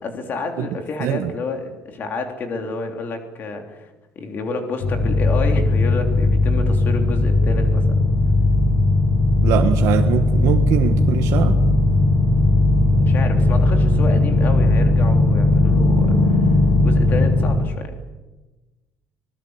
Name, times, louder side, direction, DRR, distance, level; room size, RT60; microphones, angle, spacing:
voice 1, 0.0-7.9 12.9-16.4 16.8-17.9, left 3 dB, 35° left, 4 dB, 3.3 m, -29 dB
voice 2, 1.0-1.3 9.4-11.6, right 11 dB, 70° right, 5 dB, 1.5 m, -22 dB
sound 1, 4.8-17.6, left 2 dB, 80° left, 7.9 m, -17 dB
25.5 x 20.5 x 8.1 m, 1.2 s
cardioid pair, 180°, 5 cm